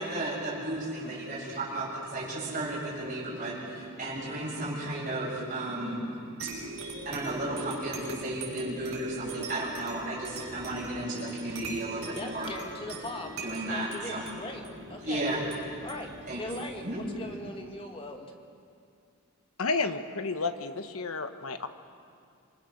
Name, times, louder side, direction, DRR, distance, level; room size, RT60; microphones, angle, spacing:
voice 1, 0.0-12.5 13.4-14.5 15.0-15.9 16.3-16.4 16.8-17.5, right 1 dB, 35° right, -7 dB, 7.6 m, -34 dB
sound 1, 6.4-17.5, right 3 dB, 85° right, 6.3 m, -43 dB
voice 2, 12.1-14.6 14.9-15.3 15.8-18.3, left 2 dB, 25° left, 3 dB, 1.8 m, -40 dB
voice 3, 19.6-21.7, left 3 dB, 75° left, 9 dB, 1.2 m, -31 dB
26.5 x 23.0 x 6.6 m, 2.4 s
head